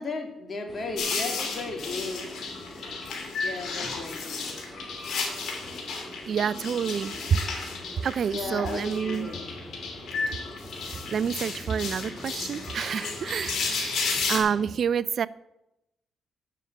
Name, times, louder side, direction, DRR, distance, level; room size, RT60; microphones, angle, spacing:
voice 1, 0.0-2.3 3.4-4.5 7.1-7.3 8.3-9.4, left 3 dB, 35° left, 3 dB, 2.3 m, -35 dB
sound 1, 0.7-14.7, left 1 dB, 15° left, 2.2 m, -44 dB
sound 2, 1.0-14.4, left 4 dB, 65° left, 2.8 m, -33 dB
voice 2, 6.3-7.4 8.0-9.3 10.8-15.3, right 7 dB, 55° right, 20 dB, 0.3 m, -28 dB
7.5 x 6.5 x 7.9 m, 0.90 s
cardioid pair, 90°, 0 cm